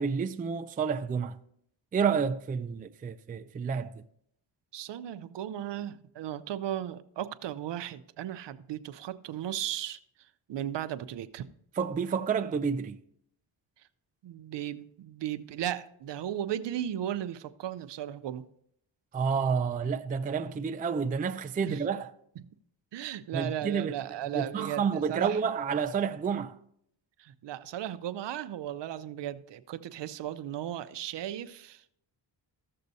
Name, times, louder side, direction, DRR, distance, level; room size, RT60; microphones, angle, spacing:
voice 1, 0.0-1.4 1.9-3.9 11.8-13.0 19.1-22.1 23.3-23.9 24.3-26.6, right 6 dB, 20° right, 0.4 m, -29 dB
voice 2, 4.7-11.5 14.2-18.4 21.6-21.8 22.4-22.5 22.9-25.4 27.2-32.0, right 11 dB, 65° right, 0.6 m, -36 dB
14.5 x 6.6 x 2.7 m
cardioid pair, 85°, 46 cm